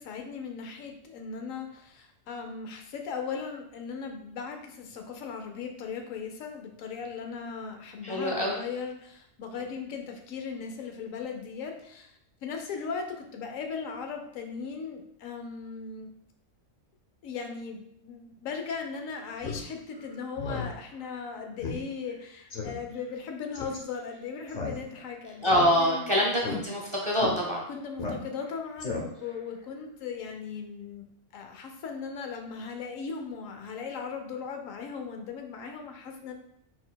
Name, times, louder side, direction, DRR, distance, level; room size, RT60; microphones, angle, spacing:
voice 1, 0.0-16.1 17.2-26.4 27.7-31.1 31.3-36.3, left 5 dB, 85° left, 4 dB, 1.0 m, -38 dB
voice 2, 8.0-8.6 25.4-27.6, equal, 35° right, -3 dB, 0.6 m, -25 dB
Speech synthesizer, 19.4-19.6 20.0-20.1 20.4-20.7 21.0-21.1 21.6-21.8 22.1-22.2 22.5-22.8 23.5-23.8 24.5-25.1 25.4-26.0 26.4-26.6 27.2-27.3 28.0-28.5 28.8-29.3, left 4 dB, 45° left, 0.6 m, -34 dB
4.2 x 4.0 x 2.3 m, 0.72 s
omnidirectional pair, 1.3 m